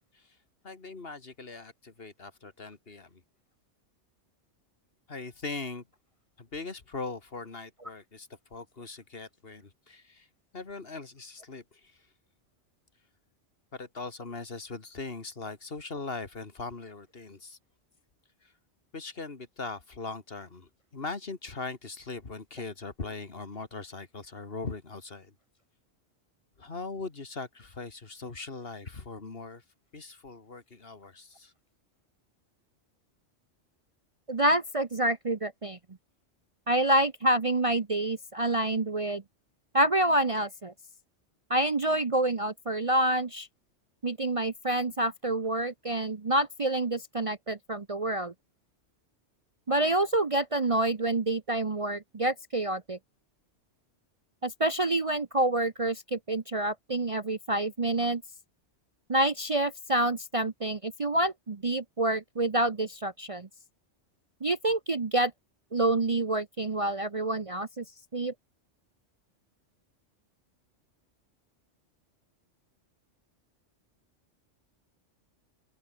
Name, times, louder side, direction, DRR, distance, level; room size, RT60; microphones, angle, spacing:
voice 1, 0.6-3.2 5.1-5.8 6.4-10.3 10.5-12.0 13.7-17.6 18.4-18.5 18.9-25.3 26.6-29.6 29.9-31.5, left 3 dB, 50° left, 2.3 m, -40 dB
voice 2, 34.3-35.8 36.7-39.2 39.7-40.7 41.5-43.5 44.0-48.3 49.7-53.0 54.4-58.2 59.1-63.5 64.4-65.3 65.7-67.8 68.1-68.3, right 1 dB, 30° right, 0.8 m, -27 dB
open air
omnidirectional pair, 1.2 m